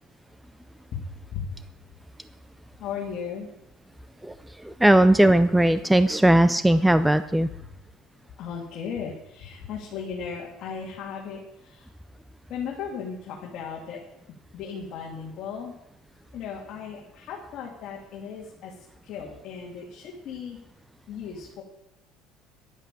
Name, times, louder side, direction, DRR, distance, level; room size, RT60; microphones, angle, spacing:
voice 1, 0.9-1.5 2.8-3.5 8.4-11.9 12.5-14.0 14.5-15.7 16.3-18.7 19.0-20.6 21.1-21.6, left 6 dB, 45° left, -2 dB, 2.5 m, -36 dB
voice 2, 4.2-7.5, right 1 dB, 5° right, 12 dB, 0.4 m, -19 dB
11.0 x 10.5 x 7.6 m, 0.83 s
cardioid pair, 165°, 0 cm